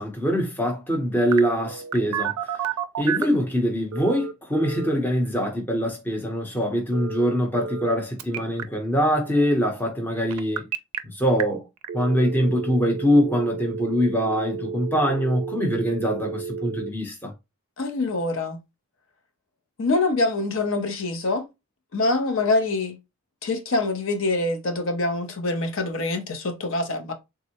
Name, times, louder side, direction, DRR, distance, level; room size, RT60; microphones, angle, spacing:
voice 1, 0.0-2.7 3.0-10.7 11.0-11.7 11.9-17.3, equal, 10° left, 0.7 m, -23 dB
Telephone, 1.3-3.4 3.9-4.9 6.9-7.9 8.2-8.6 10.3-11.0 11.4-11.5 11.8-16.9, right 7 dB, 85° right, 0.4 m, -31 dB
voice 2, 17.8-18.6 19.8-21.5 21.9-23.0 23.4-27.1, left 2 dB, 65° left, 0.5 m, -25 dB
3.5 x 2.0 x 2.8 m
head